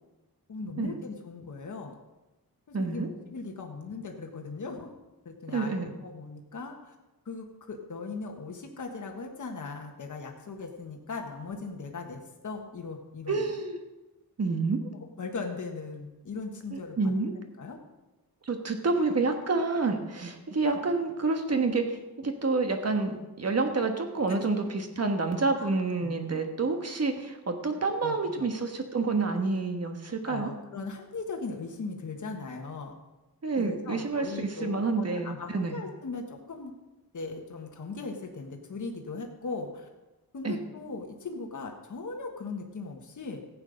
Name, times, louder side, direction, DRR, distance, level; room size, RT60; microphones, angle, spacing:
voice 1, 0.5-1.9 2.7-4.9 5.2-6.9 7.2-13.5 15.2-17.1 17.6-17.8 24.3-24.6 25.5-25.7 26.0-26.4 28.0-28.5 30.2-32.9 33.6-36.7 37.1-39.9 40.3-43.4, left 4 dB, 50° left, 2 dB, 1.4 m, -39 dB
voice 2, 2.7-3.1 5.5-5.9 13.3-13.8 14.4-14.8 16.7-17.3 18.4-30.5 33.4-35.8 40.4-40.6, right 3 dB, 40° right, 5 dB, 1.4 m, -28 dB
15.0 x 8.7 x 5.2 m, 1.1 s
wide cardioid pair, 150°, 38 cm